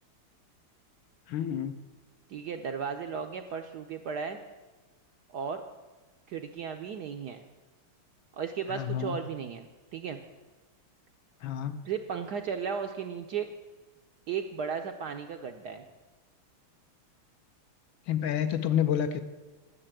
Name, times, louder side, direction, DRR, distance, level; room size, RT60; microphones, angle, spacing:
voice 1, 1.3-1.8 8.7-9.2 11.4-11.8 18.1-19.2, left 9 dB, 70° left, 10 dB, 1.4 m, -29 dB
voice 2, 2.3-4.4 5.3-5.6 6.3-7.4 8.3-10.2 11.8-13.5 14.3-15.8, right 6 dB, 70° right, 5 dB, 1.0 m, -35 dB
11.0 x 6.7 x 8.8 m, 1.2 s
omnidirectional pair, 2.4 m